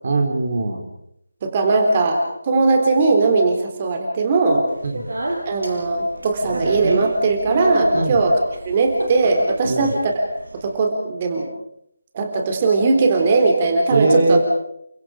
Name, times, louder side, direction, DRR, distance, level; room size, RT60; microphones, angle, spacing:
voice 1, 0.0-0.9 4.8-5.0 7.9-8.2 9.6-9.9 13.9-14.4, right 3 dB, 45° right, 3 dB, 3.9 m, -20 dB
voice 2, 1.4-4.6 5.5-8.4 8.7-10.1 10.6-11.5 12.1-14.4, right 3 dB, 30° right, 3 dB, 3.7 m, -19 dB
Speech, 4.7-10.7, right 1 dB, 65° right, 6.8 m, -30 dB
29.5 x 25.0 x 5.1 m, 0.76 s
figure-of-eight pair, 160°, 0 cm